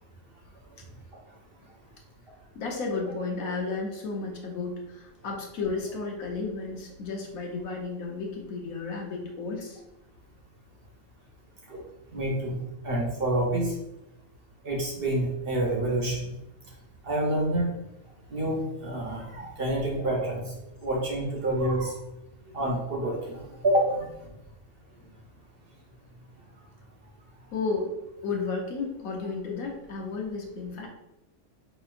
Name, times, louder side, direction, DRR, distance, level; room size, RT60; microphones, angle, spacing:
voice 1, 2.5-9.8 23.5-23.6 27.5-27.9 28.2-30.9, left 4 dB, 90° left, 0 dB, 1.3 m, -33 dB
voice 2, 12.1-12.6 12.8-13.7 14.6-16.3 17.0-17.7 18.3-20.4 20.8-21.9 22.5-24.1, right 1 dB, 45° right, -2 dB, 1.1 m, -27 dB
5.1 x 2.8 x 2.4 m, 0.90 s
omnidirectional pair, 1.4 m